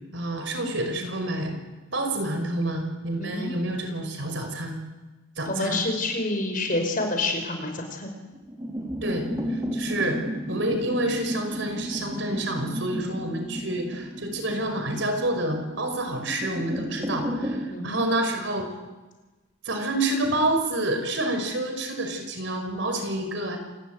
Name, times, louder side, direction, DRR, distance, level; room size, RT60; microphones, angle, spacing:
voice 1, 0.1-1.6 1.9-4.8 5.4-5.8 9.0-10.2 10.5-18.7 19.6-23.6, right 1 dB, 60° right, 5 dB, 5.7 m, -28 dB
voice 2, 3.2-3.5 5.4-8.1 17.7-18.0, left 2 dB, 40° left, 4 dB, 5.4 m, -28 dB
sound 1, 8.3-17.7, equal, 20° right, 5.0 m, -33 dB
28.0 x 19.5 x 9.2 m, 1.2 s
head